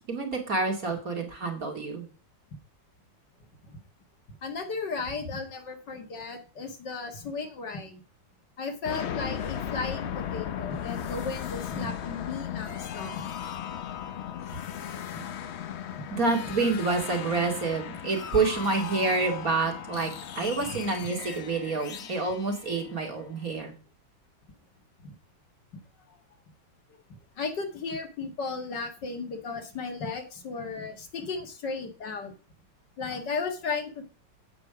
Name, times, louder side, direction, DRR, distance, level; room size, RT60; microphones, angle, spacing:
voice 1, 0.1-2.1 16.1-23.7, right 3 dB, 45° right, 2 dB, 2.8 m, -28 dB
voice 2, 4.4-8.0 8.6-13.1 15.1-15.2 16.0-16.1 21.0-21.1 25.0-25.1 26.9-27.0 27.4-32.3 33.0-34.1, left 4 dB, 65° left, 5 dB, 2.3 m, -35 dB
sound 1, 8.8-23.5, left 9 dB, 80° left, 0.6 m, -37 dB
8.9 x 8.6 x 4.9 m, 0.35 s
omnidirectional pair, 2.1 m